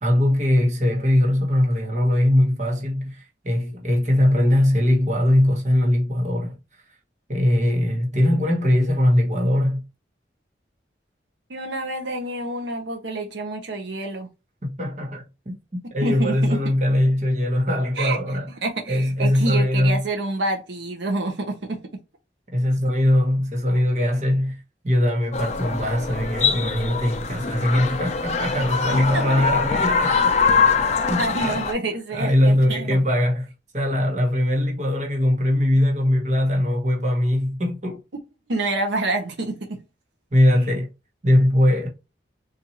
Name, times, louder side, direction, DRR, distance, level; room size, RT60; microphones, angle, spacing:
voice 1, 0.0-6.6 7.3-9.8 14.6-15.5 15.9-18.5 18.9-20.0 22.5-30.3 31.1-31.6 32.1-33.5 33.7-38.0 40.3-40.9 41.2-41.9, left 1 dB, 40° right, 1.0 m, -21 dB
voice 2, 11.5-14.3 16.0-16.6 18.0-18.2 18.6-21.8 28.9-29.4 31.2-33.0 38.5-39.8, right 2 dB, 80° right, 0.8 m, -27 dB
sound 1, 25.3-31.7, left 5 dB, 40° left, 0.5 m, -23 dB
4.0 x 2.5 x 2.8 m
head